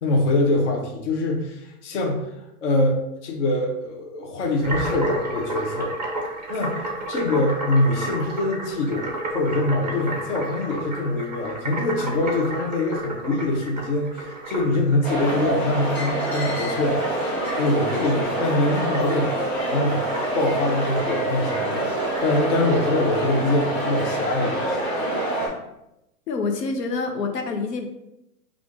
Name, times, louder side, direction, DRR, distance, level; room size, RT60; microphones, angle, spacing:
voice 1, 0.0-2.3 2.6-5.9 6.5-17.0 17.6-19.3 19.7-20.0 20.3-24.6, left 2 dB, 50° left, 0 dB, 0.8 m, -24 dB
sound 1, 4.6-23.7, right 1 dB, 30° right, 0.4 m, -33 dB
sound 2, 15.0-25.5, right 1 dB, 5° left, 1.2 m, -26 dB
voice 2, 26.3-27.9, left 4 dB, 80° left, 3 dB, 1.0 m, -26 dB
4.8 x 2.5 x 3.6 m, 0.88 s
hypercardioid pair, 170°, 48 cm